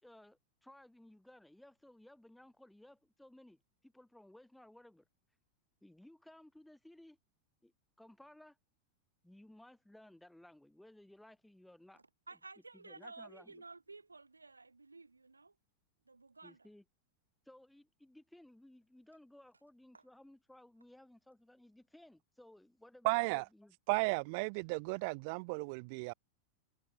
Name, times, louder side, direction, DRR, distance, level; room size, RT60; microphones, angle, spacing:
voice 1, 0.0-5.1 5.8-7.2 7.6-7.7 8.0-8.6 9.2-12.0 12.7-13.6 16.4-16.8 17.5-23.8, left 1 dB, 5° left, 7.3 m, -59 dB
voice 2, 12.3-15.5 16.1-16.7 19.9-20.0, right 3 dB, 80° right, 6.6 m, -53 dB
voice 3, 23.0-23.4 23.9-26.1, right 32 dB, 45° right, 0.4 m, -34 dB
figure-of-eight pair, 90°, 0 cm